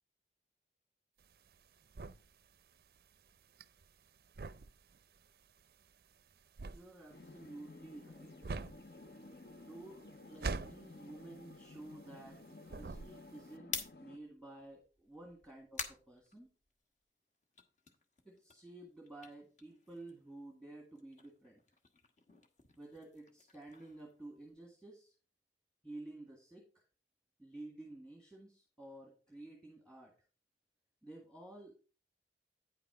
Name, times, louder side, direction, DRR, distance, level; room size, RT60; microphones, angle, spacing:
sound 1, 1.2-12.4 12.7-13.5, right 3 dB, 55° right, 0.4 m, -45 dB
voice 1, 6.7-8.4 9.5-12.4 12.7-16.5 18.2-21.6 22.8-25.1 25.8-26.8 27.4-30.1 31.0-31.8, right 2 dB, 5° left, -2 dB, 1.7 m, -52 dB
sound 2, 7.1-14.2, left 2 dB, 60° left, 0.7 m, -54 dB
sound 3, 13.7-17.0 17.4-20.4 20.7-24.8, left 4 dB, 40° left, 1.3 m, -49 dB
9.6 x 5.8 x 4.7 m, 0.36 s
head